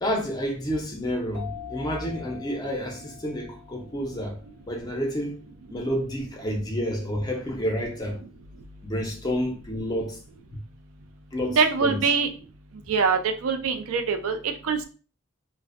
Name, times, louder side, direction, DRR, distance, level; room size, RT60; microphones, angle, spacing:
voice 1, 0.0-4.4 4.6-5.4 5.7-8.2 8.8-10.2 11.3-12.0, equal, 20° left, 0.4 m, -29 dB
sound 1, 1.3-4.6, left 13 dB, 45° right, 0.7 m, -44 dB
voice 2, 11.5-12.3 12.9-14.8, right 5 dB, 80° right, 0.4 m, -24 dB
2.5 x 2.0 x 2.4 m
head